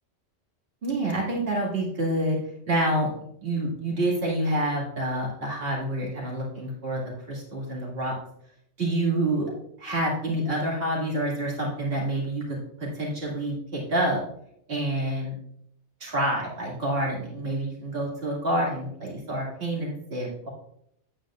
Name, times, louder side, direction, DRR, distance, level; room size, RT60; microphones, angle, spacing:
voice 1, 0.8-2.4 2.7-3.1 3.4-7.0 7.3-8.1 8.8-9.5 9.8-14.2 14.7-15.3 16.0-20.5, right 1 dB, 55° right, -3 dB, 2.5 m, -27 dB
9.7 x 8.7 x 2.5 m, 0.71 s
omnidirectional pair, 1.2 m